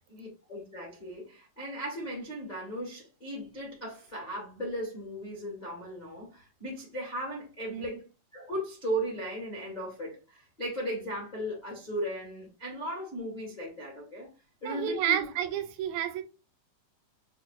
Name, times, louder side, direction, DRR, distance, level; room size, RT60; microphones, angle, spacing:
voice 1, 0.1-8.1 8.3-14.3 14.6-15.2, right 1 dB, 80° left, 0.3 m, -37 dB
voice 2, 14.7-16.2, right 10 dB, 85° right, 2.3 m, -30 dB
6.6 x 2.2 x 2.5 m
omnidirectional pair, 4.1 m